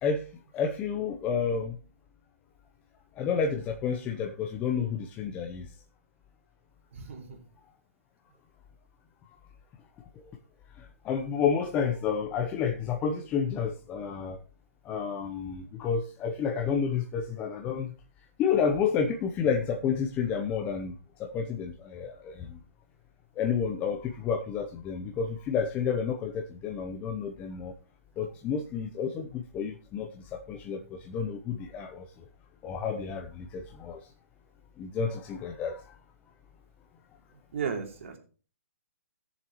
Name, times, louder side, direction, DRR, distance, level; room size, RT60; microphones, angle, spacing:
voice 1, 0.0-1.8 3.1-5.8 10.2-10.3 10.7-14.4 14.8-17.9 18.4-22.6 23.4-27.7 28.2-32.3 32.6-34.1 34.8-36.0, left 6 dB, 20° left, 3 dB, 0.7 m, -30 dB
voice 2, 6.9-7.4 37.3-38.2, right 6 dB, 60° right, 2 dB, 3.0 m, -35 dB
18.0 x 7.0 x 3.0 m, 0.37 s
hypercardioid pair, 150°, 8 cm